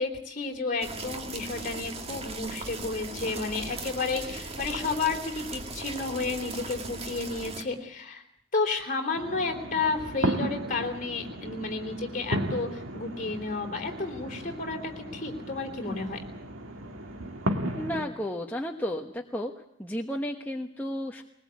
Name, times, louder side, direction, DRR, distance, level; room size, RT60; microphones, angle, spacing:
voice 1, 0.0-8.2 8.5-16.2, left 4 dB, 40° left, 3 dB, 3.5 m, -31 dB
sound 1, 0.8-7.6, right 3 dB, 30° right, 2.0 m, -38 dB
sound 2, 9.1-18.1, right 1 dB, 85° right, 2.0 m, -35 dB
voice 2, 17.7-19.5 19.8-21.2, equal, 10° left, 1 dB, 1.2 m, -33 dB
21.5 x 20.0 x 8.4 m, 0.71 s
head